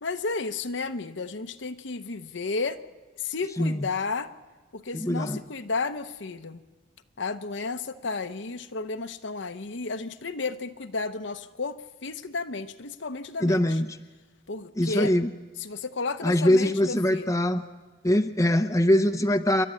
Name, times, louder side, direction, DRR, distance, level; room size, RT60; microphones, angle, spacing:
voice 1, 0.0-2.8 3.2-4.3 4.7-6.6 7.2-13.8 14.5-15.1 15.6-17.4, left 4 dB, 65° left, 9 dB, 0.9 m, -32 dB
voice 2, 4.9-5.4 13.4-14.0 14.8-15.3 16.2-17.6 18.0-19.7, left 1 dB, 15° left, 7 dB, 0.7 m, -23 dB
28.0 x 12.0 x 9.9 m, 1.3 s
head